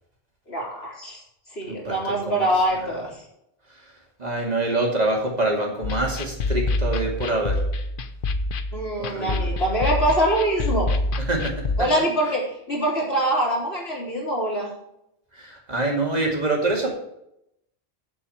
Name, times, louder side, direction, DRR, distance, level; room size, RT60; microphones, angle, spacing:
voice 1, 0.5-1.2 1.5-3.2 8.7-10.9 11.8-14.7, right 1 dB, 80° left, -3 dB, 3.8 m, -24 dB
voice 2, 1.7-2.5 4.2-7.6 9.0-9.5 11.3-11.5 15.4-16.9, right 2 dB, 40° right, 0 dB, 2.5 m, -25 dB
sound 1, 5.8-11.8, left 2 dB, 60° left, 0.9 m, -26 dB
7.5 x 7.4 x 7.7 m, 0.80 s
omnidirectional pair, 1.0 m